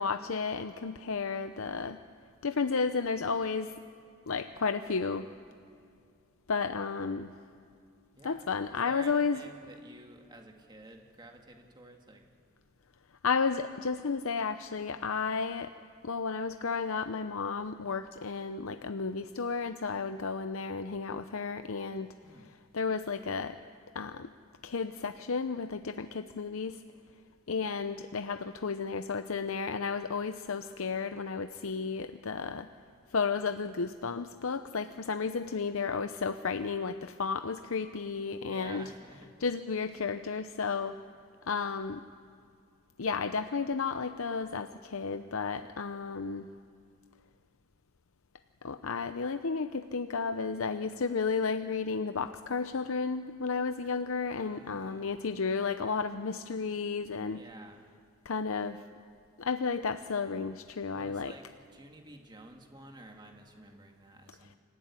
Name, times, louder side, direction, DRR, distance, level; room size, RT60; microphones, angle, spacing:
voice 1, 0.0-2.0 2.4-3.7 4.3-5.3 6.5-7.3 8.2-9.4 13.2-15.7 16.0-22.1 22.5-23.6 23.9-24.3 24.6-26.8 27.5-32.7 33.1-38.8 39.4-41.0 41.4-42.0 43.0-46.5 48.6-57.4 58.2-58.8 59.4-61.3, left 5 dB, 75° left, 10 dB, 0.7 m, -33 dB
voice 2, 8.1-12.3 22.2-22.5 38.4-39.3 54.4-55.2 57.2-57.9 60.8-64.6, right 1 dB, 20° right, 3 dB, 1.9 m, -51 dB
25.5 x 15.0 x 9.7 m, 2.3 s
head